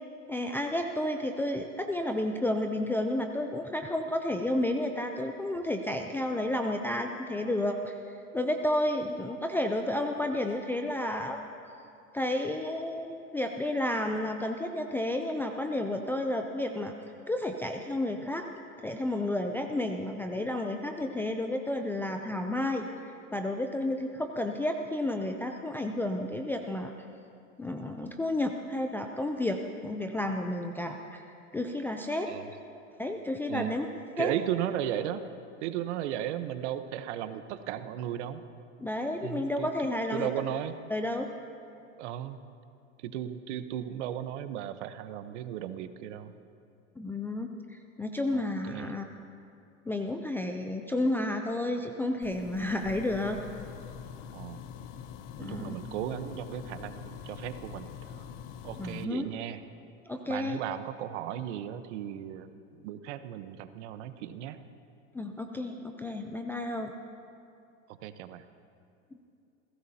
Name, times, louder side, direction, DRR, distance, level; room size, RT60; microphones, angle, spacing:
voice 1, 0.3-8.0 8.3-11.6 12.1-16.9 17.3-18.5 18.8-22.8 23.3-26.9 27.6-31.2 31.5-32.3 33.0-33.9 34.2-34.3 38.8-40.3 40.9-41.3 47.0-47.5 48.0-49.0 49.9-53.4 55.4-55.8 58.8-59.3 60.1-60.6 65.1-66.9, left 1 dB, 5° left, 3 dB, 0.4 m, -31 dB
voice 2, 34.2-35.2 35.6-38.4 39.2-39.7 40.1-40.7 42.0-42.4 43.0-46.4 48.3-49.0 54.3-54.6 55.4-58.2 58.6-59.6 60.3-64.6 67.9-68.4, right 11 dB, 60° right, 11 dB, 1.1 m, -36 dB
sound 1, 52.2-59.0, left 8 dB, 45° left, 0.8 m, -44 dB
28.0 x 16.5 x 2.8 m, 2.5 s
hypercardioid pair, 115°, 40 cm